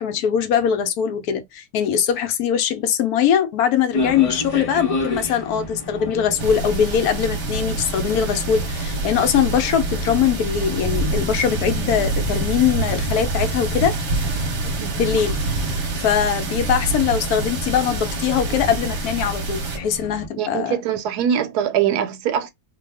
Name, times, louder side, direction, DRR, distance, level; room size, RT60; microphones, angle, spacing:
voice 1, 0.0-14.0 14.9-20.7, left 8 dB, 75° left, 1.1 m, -21 dB
sound 1, 3.9-20.3, left 1 dB, 30° left, 0.7 m, -33 dB
sound 2, 6.4-19.8, right 2 dB, 55° right, 1.0 m, -26 dB
voice 2, 14.6-15.0 20.4-22.5, right 9 dB, 80° right, 1.1 m, -23 dB
2.6 x 2.3 x 3.3 m
omnidirectional pair, 1.7 m